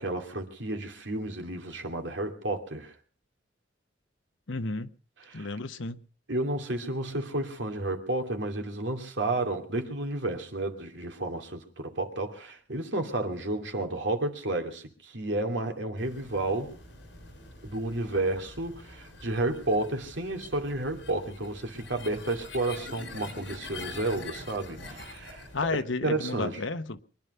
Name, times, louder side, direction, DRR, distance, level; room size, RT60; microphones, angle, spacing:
voice 1, 0.0-2.9 5.2-5.5 6.3-16.7 17.6-25.7 26.0-26.6, right 2 dB, 70° right, 2.6 m, -31 dB
voice 2, 4.5-4.9 5.3-6.0 25.5-27.0, left 3 dB, 80° left, 1.1 m, -32 dB
sound 1, 16.0-25.8, left 2 dB, 65° left, 5.6 m, -45 dB
24.0 x 11.0 x 5.5 m
head